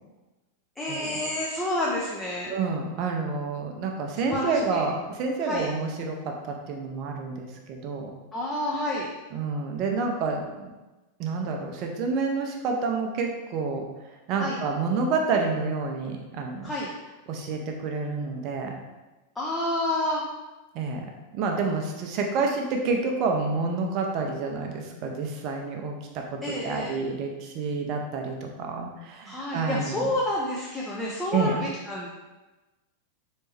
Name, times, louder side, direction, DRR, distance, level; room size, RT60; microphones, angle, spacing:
voice 1, 0.8-2.5 4.3-4.8 5.5-5.7 8.3-9.1 14.4-14.6 16.6-16.9 19.4-20.2 26.4-26.9 29.3-32.1, left 1 dB, 10° left, -5 dB, 0.7 m, -29 dB
voice 2, 2.5-8.1 9.3-10.7 11.2-13.9 14.3-16.7 17.3-18.7 20.7-30.1 31.3-31.6, right 4 dB, 40° right, 2 dB, 0.7 m, -29 dB
4.2 x 3.2 x 3.4 m, 1.1 s
figure-of-eight pair, 90°, 0 cm